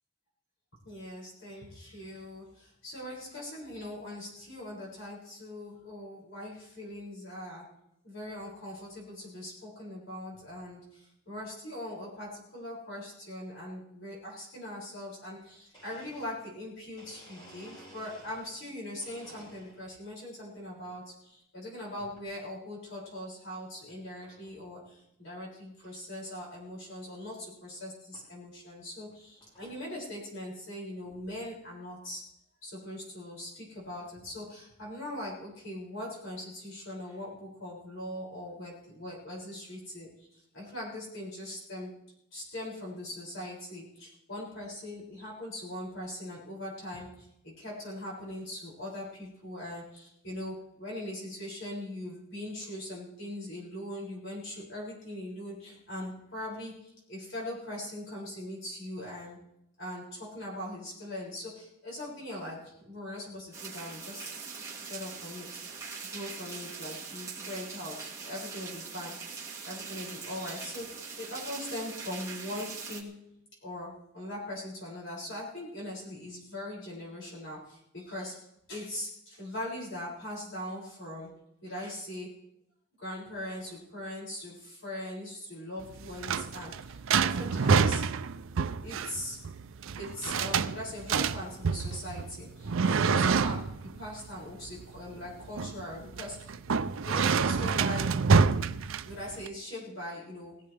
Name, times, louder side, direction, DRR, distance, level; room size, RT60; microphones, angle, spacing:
voice 1, 0.8-7.7 8.0-32.3 32.6-41.9 42.3-59.4 59.8-64.5 64.9-65.7 66.1-69.2 69.6-73.2 73.6-81.3 81.6-82.3 83.0-88.1 88.8-89.4 90.0-96.5 97.0-98.2 99.0-100.6, left 1 dB, 60° left, -5 dB, 6.5 m, -41 dB
Domestic sounds home sounds, 15.7-18.7 19.0-20.0 20.5-21.0 22.0-22.3 22.9-23.0 23.9-24.0 24.2-24.6 25.0-25.1 25.3-25.4 25.8-25.9 27.2-27.3 28.1-28.3 28.9-29.9, right 1 dB, 20° left, 6.5 m, -54 dB
sound 1, 63.5-73.0, right 5 dB, 15° right, 2.0 m, -42 dB
sound 2, 85.8-99.5, right 5 dB, 70° right, 0.5 m, -28 dB
20.5 x 15.0 x 3.4 m, 0.80 s
head